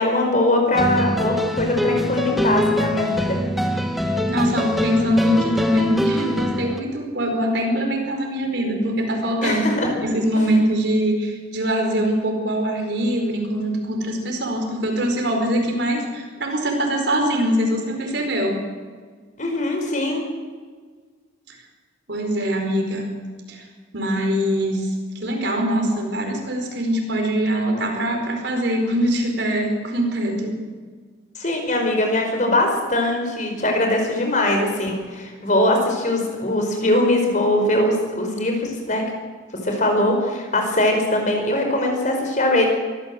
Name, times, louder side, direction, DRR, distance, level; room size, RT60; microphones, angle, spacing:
voice 1, 0.0-3.4 9.4-9.9 19.4-20.2 31.3-39.0 39.6-42.7, left 1 dB, 40° left, 3 dB, 4.8 m, -21 dB
sound 1, 0.7-6.8, left 1 dB, ahead, 1.5 m, -23 dB
voice 2, 4.3-9.7 10.0-18.6 21.5-21.6 22.1-23.2 23.5-23.6 23.9-25.0 25.2-30.6, equal, 65° right, 3 dB, 4.9 m, -23 dB
24.0 x 15.5 x 7.9 m, 1.5 s
head